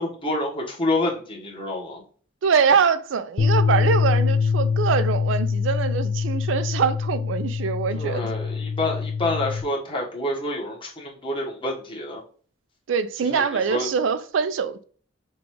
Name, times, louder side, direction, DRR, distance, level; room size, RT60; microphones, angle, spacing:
voice 1, 0.0-2.0 7.9-12.2 13.3-13.9, left 2 dB, 25° left, 1.2 m, -28 dB
voice 2, 2.4-8.3 12.9-14.8, right 6 dB, 70° right, 0.4 m, -23 dB
sound 1, 3.4-9.6, left 5 dB, 50° left, 0.4 m, -24 dB
6.1 x 2.4 x 3.0 m
head